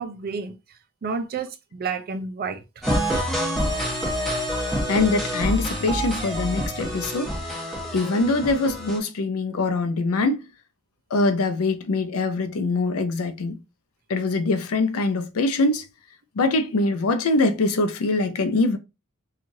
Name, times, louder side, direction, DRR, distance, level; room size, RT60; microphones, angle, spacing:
voice 1, 0.0-2.8, right 5 dB, 45° right, 0.4 m, -31 dB
sound 1, 2.8-9.0, equal, ahead, 1.2 m, -27 dB
voice 2, 4.9-10.5 11.1-13.6 14.1-15.9 16.4-18.8, left 3 dB, 75° left, 0.5 m, -23 dB
3.0 x 2.4 x 2.6 m
head